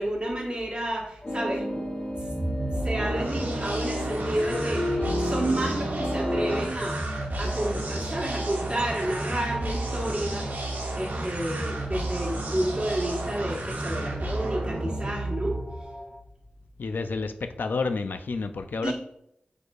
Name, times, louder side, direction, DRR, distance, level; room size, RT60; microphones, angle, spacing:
voice 1, 0.0-2.0 2.6-7.0 7.4-15.6 18.8-18.9, right 1 dB, 25° right, -4 dB, 1.4 m, -31 dB
sound 1, 1.2-6.6, left 1 dB, 40° left, 1.0 m, -31 dB
sound 2, 1.2-16.2, left 1 dB, 15° left, 0.7 m, -44 dB
sound 3, 2.1-15.8, right 2 dB, 70° right, 0.9 m, -31 dB
voice 2, 16.8-18.9, left 4 dB, 80° left, 9 dB, 0.3 m, -30 dB
4.7 x 4.3 x 2.4 m, 0.77 s
cardioid pair, 50°, 3 cm